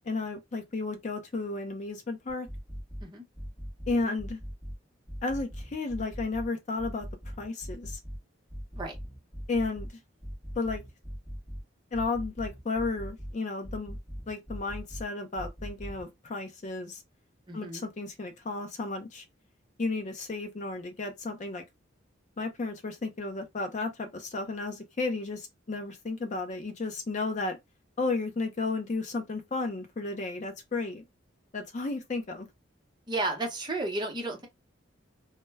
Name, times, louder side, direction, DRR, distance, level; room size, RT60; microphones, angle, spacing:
voice 1, 0.1-2.5 3.9-4.4 5.2-7.1 7.4-8.0 9.5-9.9 10.6-10.8 11.9-14.0 14.3-17.0 17.5-19.2 19.8-21.6 22.4-27.6 28.0-31.0 31.5-32.5, left 3 dB, 35° left, 0.4 m, -33 dB
sound 1, 2.3-3.0 3.4-4.7 5.1-6.5 6.8-8.2 8.5-9.9 10.2-11.6 11.9-13.3 13.6-15.0 15.4-16.0, equal, 10° left, 0.9 m, -40 dB
voice 2, 17.5-17.8 33.1-34.5, right 2 dB, 20° right, 0.7 m, -33 dB
2.1 x 2.1 x 3.2 m
head